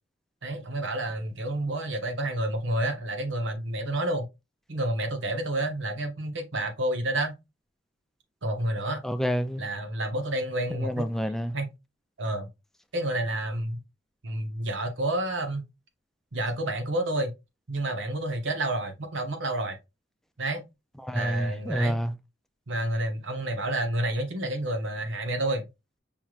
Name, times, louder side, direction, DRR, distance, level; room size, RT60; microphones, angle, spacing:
voice 1, 0.4-4.3 4.7-7.3 8.4-9.0 9.6-11.1 11.5-11.7 12.2-12.5 12.9-13.8 14.2-15.6 16.3-17.3 17.7-19.8 20.4-20.6 21.1-22.0 22.7-25.6, right 1 dB, 80° right, 1.1 m, -29 dB
voice 2, 9.0-9.7 10.8-11.6 21.0-22.1, equal, ahead, 0.4 m, -28 dB
5.5 x 3.2 x 2.4 m
head